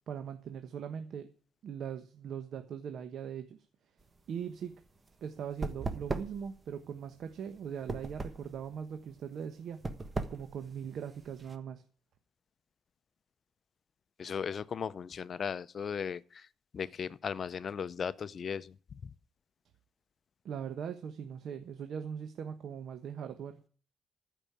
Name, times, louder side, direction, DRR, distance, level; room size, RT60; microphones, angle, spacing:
voice 1, 0.1-1.3 1.6-3.6 4.3-4.7 5.2-9.8 10.3-11.8 20.4-23.7, right 8 dB, 65° right, 1.2 m, -40 dB
sound 1, 4.0-11.6, right 3 dB, 25° right, 1.3 m, -40 dB
voice 2, 14.2-16.5 16.7-18.7, left 7 dB, 50° left, 0.6 m, -37 dB
14.5 x 5.5 x 8.7 m
cardioid pair, 90°, 0 cm